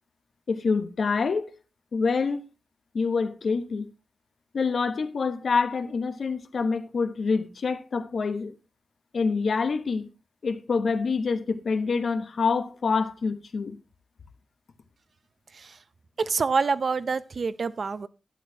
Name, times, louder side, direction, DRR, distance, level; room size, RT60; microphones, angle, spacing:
voice 1, 0.5-1.5 1.9-2.4 2.9-3.9 4.5-8.5 9.1-10.1 10.4-13.8, left 4 dB, 70° left, 0.9 m, -26 dB
voice 2, 16.2-18.1, right 4 dB, 60° right, 0.5 m, -27 dB
11.5 x 9.7 x 2.8 m
wide cardioid pair, 105°, 0 cm